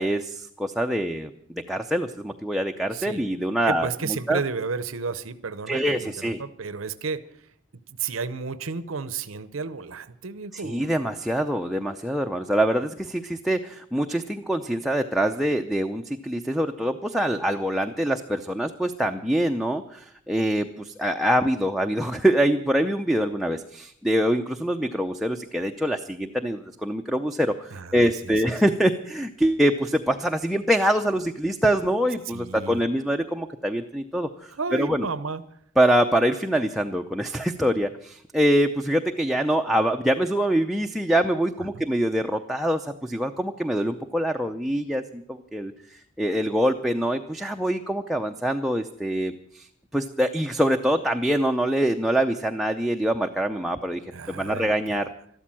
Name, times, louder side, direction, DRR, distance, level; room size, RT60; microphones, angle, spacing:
voice 1, 0.0-4.4 5.7-6.4 10.5-35.1 35.8-45.7 46.2-49.7 49.9-54.0 54.3-55.1, right 1 dB, ahead, 3 dB, 0.6 m, -24 dB
voice 2, 3.7-7.2 8.0-11.0 27.7-28.1 32.3-32.8 34.6-35.4 41.7-41.8 54.1-55.0, right 5 dB, 80° right, 14 dB, 0.8 m, -32 dB
13.5 x 13.0 x 7.5 m, 0.68 s
head